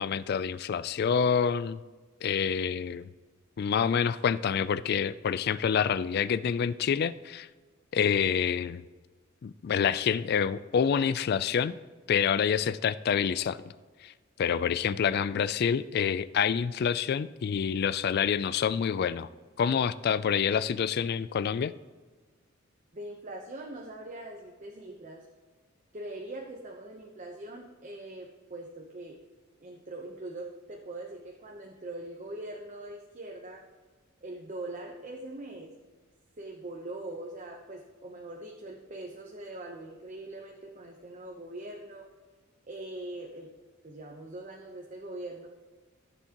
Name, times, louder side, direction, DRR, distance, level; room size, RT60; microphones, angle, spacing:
voice 1, 0.0-1.8 2.2-3.1 3.6-7.5 7.9-8.8 9.4-11.8 12.1-13.6 14.0-14.1 14.4-19.3 19.6-21.7, left 7 dB, 50° left, 17 dB, 0.3 m, -27 dB
voice 2, 22.9-25.3 25.9-29.2 29.6-33.6 34.2-35.7 36.4-42.1 42.7-43.5 43.8-45.5, right 2 dB, 35° right, 0 dB, 0.8 m, -42 dB
14.5 x 7.1 x 2.9 m, 1.4 s
head